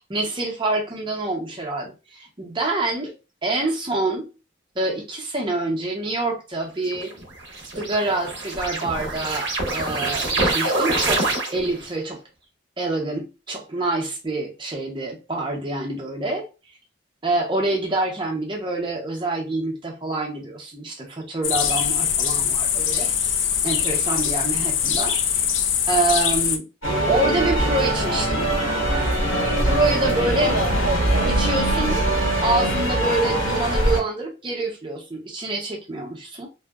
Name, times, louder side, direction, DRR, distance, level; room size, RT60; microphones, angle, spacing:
voice 1, 0.1-3.1 3.4-4.3 4.8-7.1 7.8-12.2 12.8-16.4 17.2-23.1 23.6-25.2 25.9-26.6 27.1-28.5 29.6-30.5 31.3-32.0 32.4-36.5, right 2 dB, 25° right, 0.6 m, -26 dB
sound 1, 6.9-11.9, right 2 dB, 65° right, 0.7 m, -26 dB
sound 2, 21.4-26.6, left 8 dB, 70° left, 0.4 m, -22 dB
sound 3, 26.8-34.0, right 1 dB, 90° left, 1.4 m, -22 dB
2.6 x 2.0 x 2.3 m
head